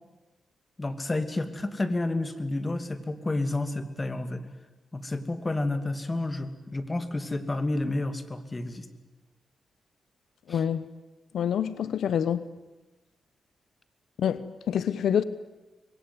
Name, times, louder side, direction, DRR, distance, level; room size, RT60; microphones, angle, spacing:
voice 1, 0.8-4.4 4.9-8.9 10.5-10.6, left 2 dB, 25° left, 2.7 m, -30 dB
voice 2, 10.5-10.9 11.3-12.5 14.2-15.2, left 8 dB, 80° left, 0.9 m, -27 dB
26.5 x 22.0 x 9.7 m
cardioid pair, 80°, 0 cm